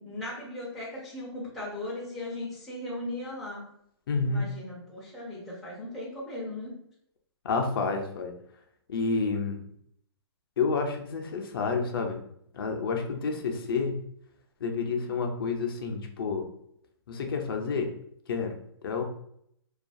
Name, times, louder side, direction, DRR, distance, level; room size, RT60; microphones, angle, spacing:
voice 1, 0.0-3.7 4.2-6.7, left 1 dB, ahead, -10 dB, 0.4 m, -37 dB
voice 2, 4.1-4.5 7.4-8.3 8.9-9.7 10.6-12.2 12.5-14.0 14.6-16.5 17.1-17.9 18.3-18.6 18.8-19.0, left 4 dB, 55° left, 4 dB, 0.4 m, -29 dB
2.3 x 2.2 x 2.5 m, 0.70 s
hypercardioid pair, 165°, 14 cm